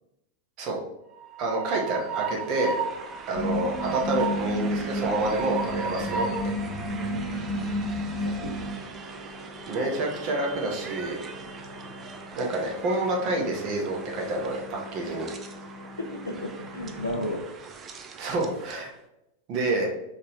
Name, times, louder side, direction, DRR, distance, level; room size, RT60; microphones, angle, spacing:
Train, 1.1-18.9, right 5 dB, 25° right, 0.5 m, -38 dB
voice 1, 1.4-2.8 3.3-6.6 9.7-11.2 12.4-15.3 18.2-18.9 19.5-19.9, right 2 dB, 40° right, -1 dB, 1.2 m, -28 dB
sound 1, 3.3-8.7, equal, 20° left, 1.0 m, -31 dB
sound 2, 5.2-17.3, left 2 dB, 40° left, 0.8 m, -46 dB
voice 2, 6.9-7.8 8.2-8.7 15.0-15.1 16.0-17.5, left 1 dB, 80° left, -1 dB, 0.5 m, -35 dB
4.8 x 3.5 x 3.1 m, 0.88 s
figure-of-eight pair, 90°, 0 cm